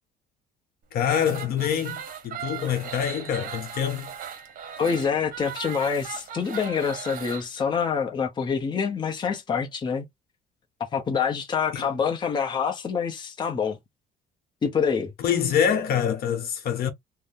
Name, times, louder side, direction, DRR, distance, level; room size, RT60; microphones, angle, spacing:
voice 1, 0.9-4.2 11.7-12.0 15.2-16.9, left 8 dB, 65° left, 0.9 m, -26 dB
sound 1, 1.0-7.4, right 8 dB, 55° right, 0.8 m, -38 dB
voice 2, 4.8-10.1 10.9-13.8 14.6-15.1, left 6 dB, 25° left, 0.7 m, -26 dB
2.6 x 2.1 x 3.6 m
cardioid pair, 110°, 17 cm